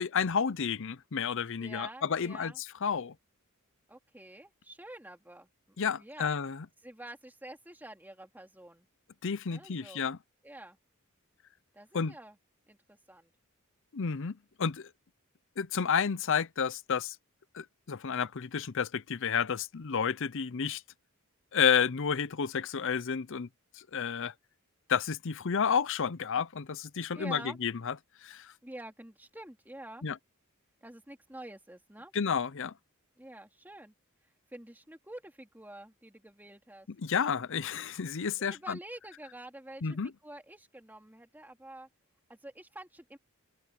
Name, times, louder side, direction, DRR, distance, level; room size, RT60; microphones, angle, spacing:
voice 1, 0.0-3.1 5.8-6.7 9.2-10.2 11.9-12.1 13.9-14.9 15.6-17.2 17.5-20.8 21.5-23.5 23.9-24.3 24.9-27.9 28.2-28.5 30.0-30.2 32.1-32.7 37.0-38.8 39.8-40.1, left 6 dB, 60° left, 0.6 m, -31 dB
voice 2, 1.6-2.6 3.9-6.3 6.8-8.9 9.5-10.1 10.4-10.8 11.7-12.4 12.7-13.3 27.1-27.6 28.6-30.0 30.8-32.1 33.2-33.9 34.5-36.9 38.4-41.9 42.3-43.2, right 1 dB, 10° right, 2.6 m, -48 dB
open air
head